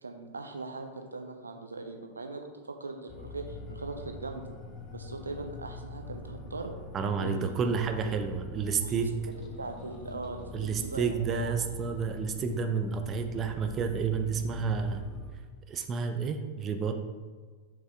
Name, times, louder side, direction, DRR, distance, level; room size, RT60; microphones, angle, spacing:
voice 1, 0.0-4.5 4.9-6.7 7.2-7.7 8.8-9.1 9.4-11.6, right 3 dB, 75° right, 5 dB, 0.8 m, -40 dB
sound 1, 3.1-15.3, left 2 dB, 30° left, 1.0 m, -43 dB
voice 2, 6.9-9.1 10.5-15.0 15.7-16.9, right 5 dB, 25° right, 6 dB, 0.6 m, -30 dB
6.9 x 6.3 x 3.5 m, 1.5 s
figure-of-eight pair, 90°, 0 cm